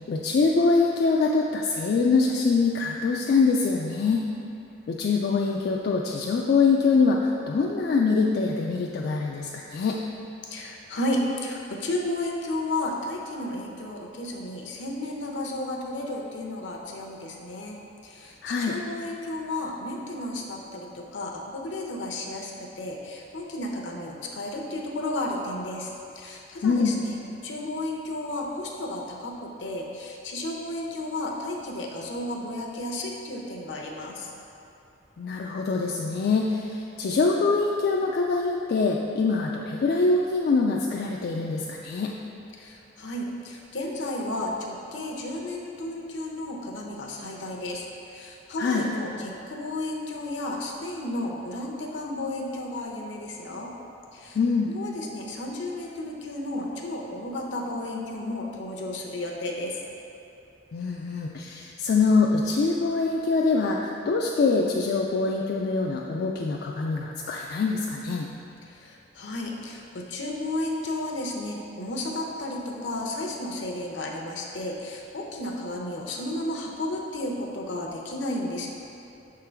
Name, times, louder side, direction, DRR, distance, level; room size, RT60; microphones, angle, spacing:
voice 1, 0.1-4.2 4.9-10.0 18.4-18.7 26.6-26.9 35.2-42.1 48.6-48.8 54.4-54.7 60.7-68.3, left 4 dB, 60° left, -1 dB, 0.3 m, -24 dB
voice 2, 10.4-27.2 27.4-34.3 42.5-53.7 54.1-54.4 54.6-59.8 68.6-78.7, left 1 dB, 75° left, 0 dB, 0.8 m, -33 dB
6.3 x 3.8 x 4.4 m, 2.8 s
head